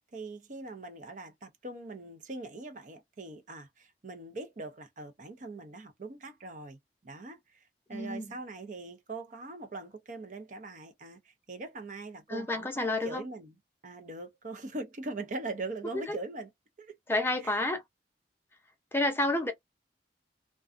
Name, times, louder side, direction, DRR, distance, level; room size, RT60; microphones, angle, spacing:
voice 1, 0.1-13.6 13.8-16.5 16.8-17.0 17.4-17.6, right 2 dB, 45° right, 0.6 m, -42 dB
voice 2, 7.9-8.3 12.3-13.2 15.9-16.2 17.1-17.8 18.9-19.5, left 2 dB, 10° left, 0.6 m, -30 dB
2.4 x 2.3 x 2.5 m
head